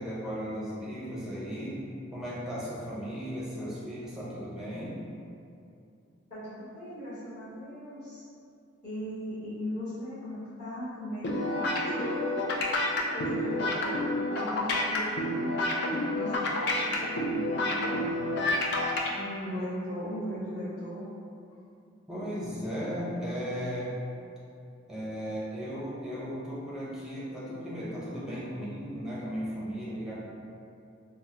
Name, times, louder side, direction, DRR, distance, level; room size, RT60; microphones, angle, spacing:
voice 1, 0.0-1.8 2.1-5.0 22.1-24.0 24.9-30.1, equal, 5° right, -8 dB, 0.6 m, -36 dB
voice 2, 6.3-8.2 8.8-12.3 12.9-15.6 16.1-18.1 19.1-21.1, equal, 35° left, -18 dB, 1.3 m, -38 dB
sound 1, 11.2-19.1, left 1 dB, 55° left, 0.4 m, -29 dB
3.5 x 2.0 x 2.8 m, 2.6 s
head